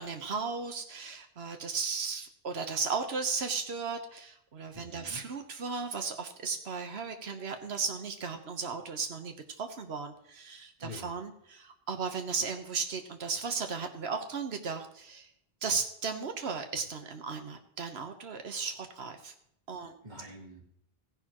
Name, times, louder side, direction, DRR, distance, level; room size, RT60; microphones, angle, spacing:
voice 1, 0.0-15.3 15.6-19.3 19.7-20.0, right 5 dB, 90° right, 6 dB, 1.3 m, -35 dB
voice 2, 4.7-5.2 10.8-11.2 19.8-20.6, left 2 dB, 45° right, 0 dB, 2.4 m, -47 dB
15.5 x 10.5 x 3.0 m, 0.73 s
omnidirectional pair, 1.0 m